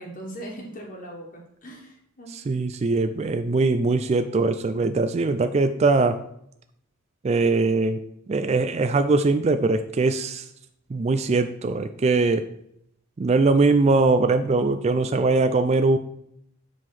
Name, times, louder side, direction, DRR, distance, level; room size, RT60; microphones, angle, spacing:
voice 1, 0.0-2.3, right 1 dB, 40° left, -1 dB, 1.4 m, -39 dB
voice 2, 2.3-6.2 7.2-8.0 8.3-10.5 10.9-12.5 13.2-16.0, right 3 dB, 30° right, 9 dB, 0.3 m, -21 dB
7.6 x 3.7 x 6.1 m, 0.73 s
head